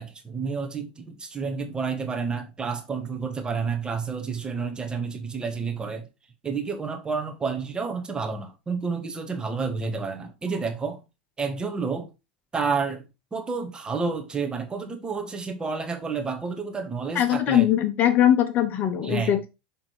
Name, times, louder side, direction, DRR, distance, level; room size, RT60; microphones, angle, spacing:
voice 1, 0.0-6.0 6.4-11.0 11.4-12.1 12.5-13.0 13.3-17.7 19.0-19.3, right 5 dB, 20° right, 1.5 m, -30 dB
voice 2, 17.1-19.5, left 11 dB, 40° left, 0.9 m, -21 dB
6.4 x 3.6 x 4.6 m
hypercardioid pair, 90°, 5 cm